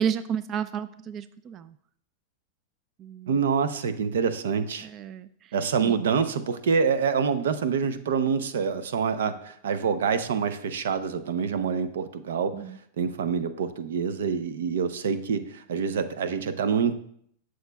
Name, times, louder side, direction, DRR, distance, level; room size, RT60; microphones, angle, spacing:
voice 1, 0.0-1.6 3.0-3.3 4.8-5.3 5.8-5.9 12.5-12.8, right 8 dB, 30° right, 13 dB, 0.3 m, -31 dB
voice 2, 3.3-4.9 5.5-12.5 13.0-17.0, right 6 dB, 80° right, 11 dB, 0.6 m, -26 dB
15.0 x 6.3 x 2.3 m, 0.66 s
hypercardioid pair, 130°, 0 cm